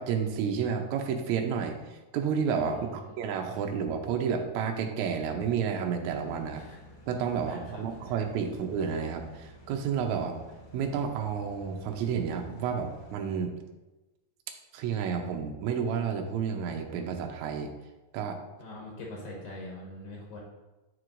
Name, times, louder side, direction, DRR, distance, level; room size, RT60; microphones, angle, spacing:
voice 1, 0.0-6.6 7.1-10.3 10.7-13.5 14.7-17.7 18.1-18.4, right 7 dB, 90° right, 3 dB, 1.6 m, -31 dB
voice 2, 2.7-3.2 6.5-6.8 7.5-8.1 18.6-20.4, left 1 dB, 75° left, -2 dB, 2.8 m, -43 dB
sound 1, 6.0-13.1, right 1 dB, 45° left, 1.2 m, -52 dB
9.0 x 4.6 x 2.5 m, 1.1 s
omnidirectional pair, 4.2 m